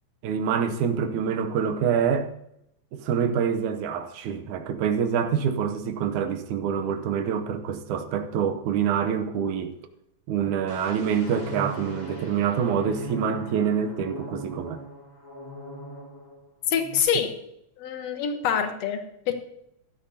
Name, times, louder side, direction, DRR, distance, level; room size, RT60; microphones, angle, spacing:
voice 1, 0.2-2.3 2.9-9.7 10.3-14.8, right 7 dB, 90° right, 2.3 m, -26 dB
sound 1, 10.7-16.4 16.7-17.0, equal, 20° left, 1.1 m, -40 dB
voice 2, 16.7-17.4 17.8-19.3, left 7 dB, 65° left, 2.2 m, -26 dB
15.5 x 12.0 x 2.8 m
omnidirectional pair, 3.3 m